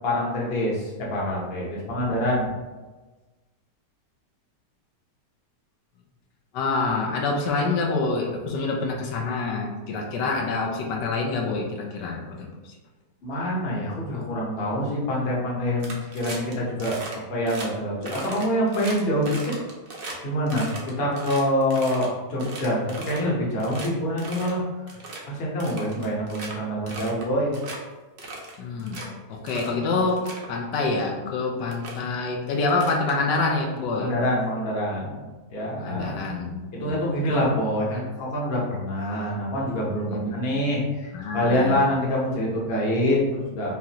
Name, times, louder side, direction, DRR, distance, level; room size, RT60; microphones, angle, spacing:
voice 1, 0.0-2.5 13.2-17.0 17.3-19.5 20.2-20.7 21.0-24.6 25.3-27.5 33.9-35.2 35.5-36.1 36.7-43.8, equal, 40° left, -4 dB, 1.0 m, -25 dB
voice 2, 6.5-12.5 28.6-29.0 29.3-34.1 35.8-37.0 37.3-37.5 40.1-40.4 41.1-41.9, left 3 dB, 80° left, 0 dB, 1.3 m, -26 dB
sound 1, 15.8-16.5 16.8-17.2 17.5-17.7 18.0-20.2 20.5-22.1 22.4-23.3 23.6-23.9 24.2-24.6 24.9-25.2 25.6-26.5 26.9-27.3 27.5-27.8 28.2-29.1 29.5-29.7 30.1-30.5 31.3-31.4 31.7-32.0 32.7-33.6, right 2 dB, 50° right, 0.7 m, -37 dB
5.6 x 2.5 x 2.9 m, 1.2 s
omnidirectional pair, 1.9 m